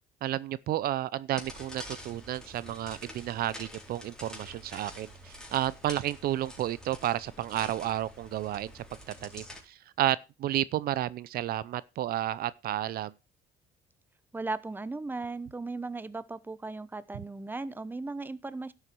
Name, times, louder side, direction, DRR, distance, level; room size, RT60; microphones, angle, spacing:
voice 1, 0.2-8.8 9.2-13.1, right 13 dB, 65° right, 0.6 m, -32 dB
sound 1, 1.3-9.6, left 1 dB, 5° left, 4.2 m, -47 dB
voice 2, 14.3-18.7, right 3 dB, 10° right, 0.8 m, -37 dB
11.0 x 8.1 x 4.6 m
cardioid pair, 110°, 17 cm